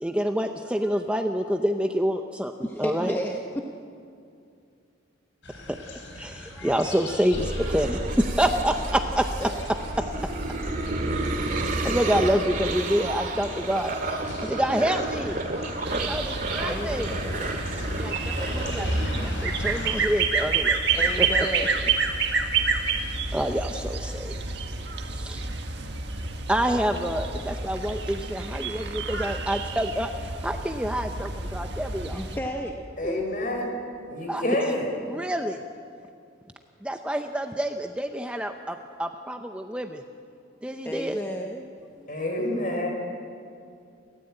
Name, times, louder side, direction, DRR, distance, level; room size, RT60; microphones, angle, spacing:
voice 1, 0.0-3.1 5.7-5.8 6.2-9.2 10.0-10.1 11.4-13.9 14.4-15.4 15.9-17.1 18.0-18.1 18.4-20.9 21.2-21.3 23.3-24.4 25.0-25.5 26.5-32.2 34.3-34.7 35.1-35.6 36.8-40.0 40.6-41.2, equal, 5° right, 5 dB, 0.7 m, -27 dB
voice 2, 2.6-3.4 9.4-9.5 16.7-17.6 20.9-21.8 32.1-32.8 33.0-33.2 40.8-41.6, equal, 10° left, 2 dB, 1.0 m, -32 dB
sound 1, 5.4-19.9, left 1 dB, 75° left, 4.8 m, -40 dB
sound 2, 7.3-19.3, right 2 dB, 45° right, 2.2 m, -30 dB
sound 3, 15.8-32.4, right 4 dB, 60° right, 1.8 m, -29 dB
voice 3, 33.0-33.7 34.1-34.9 42.1-42.9, left 1 dB, 45° left, 2 dB, 5.4 m, -28 dB
29.5 x 13.5 x 8.8 m, 2.5 s
head